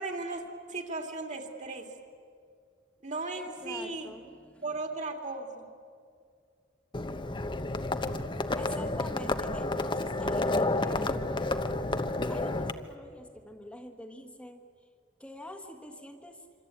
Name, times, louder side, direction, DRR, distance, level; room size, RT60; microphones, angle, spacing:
voice 1, 0.0-1.9 3.0-4.1 4.6-5.7, right 3 dB, 40° right, 4 dB, 2.8 m, -36 dB
voice 2, 3.3-4.6 8.5-11.3 12.3-14.7 15.2-16.5, left 1 dB, 5° left, 3 dB, 1.5 m, -46 dB
Livestock farm animals working animals, 6.9-12.7, left 2 dB, 25° left, 1.0 m, -30 dB
26.5 x 25.5 x 8.7 m, 2.2 s
head